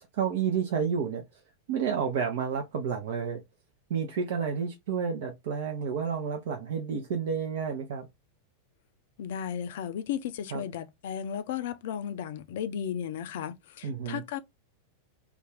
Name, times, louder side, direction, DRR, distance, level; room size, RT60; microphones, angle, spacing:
voice 1, 0.1-1.4 1.7-3.4 3.9-8.1 10.5-10.6 13.8-14.2, right 7 dB, 55° right, 0.5 m, -30 dB
voice 2, 9.2-14.4, left 9 dB, 55° left, 0.4 m, -35 dB
2.4 x 2.3 x 3.3 m
figure-of-eight pair, 90°, 0 cm